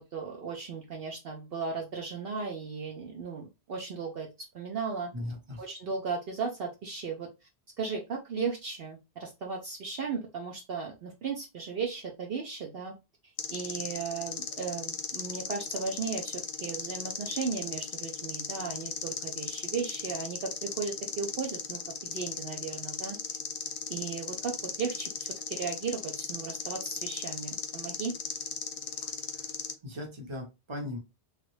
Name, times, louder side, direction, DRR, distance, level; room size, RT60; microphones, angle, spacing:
voice 1, 0.0-4.3 4.5-5.1 5.6-7.3 7.8-12.9 13.2-23.2 23.9-28.1, right 5 dB, 65° right, 0 dB, 0.8 m, -36 dB
voice 2, 5.1-5.6 28.9-29.5 29.8-31.0, left 1 dB, 25° right, 1 dB, 1.0 m, -39 dB
sound 1, 13.4-29.7, left 6 dB, 60° left, 0.7 m, -37 dB
3.1 x 2.5 x 3.1 m, 0.25 s
omnidirectional pair, 1.1 m